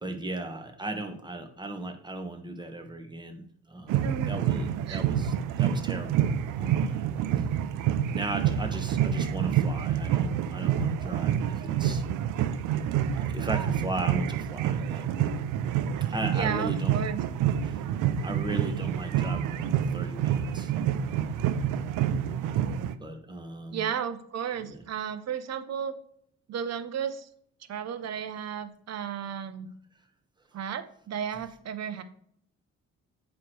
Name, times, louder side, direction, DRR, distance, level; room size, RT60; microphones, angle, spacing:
voice 1, 0.0-3.4 3.7-6.3 6.6-7.1 8.1-12.0 13.1-15.1 16.1-17.0 17.6-17.8 18.2-20.7 21.1-21.4 23.0-23.9 24.6-24.8, right 1 dB, 15° right, 5 dB, 1.2 m, -37 dB
sound 1, 3.9-23.0, right 9 dB, 90° right, 0.5 m, -28 dB
voice 2, 4.0-4.4 4.9-5.1 16.3-17.2 23.7-26.0 26.5-27.3 27.7-29.7 30.5-32.0, right 8 dB, 60° right, 11 dB, 0.8 m, -33 dB
8.3 x 3.2 x 4.6 m, 0.65 s
cardioid pair, 90°, 30 cm